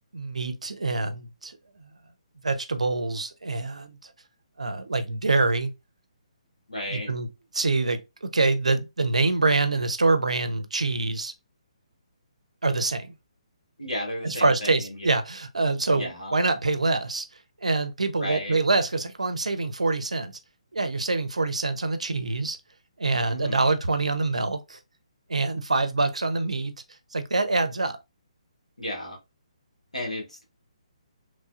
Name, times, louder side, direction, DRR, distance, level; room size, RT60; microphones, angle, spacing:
voice 1, 0.1-1.6 2.4-4.1 4.6-5.7 6.9-7.3 7.5-11.3 12.6-13.1 14.2-17.3 17.6-20.4 20.7-22.6 23.0-24.8 25.3-26.7 27.1-28.0, right 3 dB, 75° right, 0.5 m, -25 dB
voice 2, 6.7-7.1 13.8-15.1 15.9-16.3 18.2-18.6 23.3-23.7 28.8-29.2 29.9-30.4, left 1 dB, 85° left, 1.3 m, -34 dB
3.1 x 2.3 x 2.6 m
figure-of-eight pair, 135°, 4 cm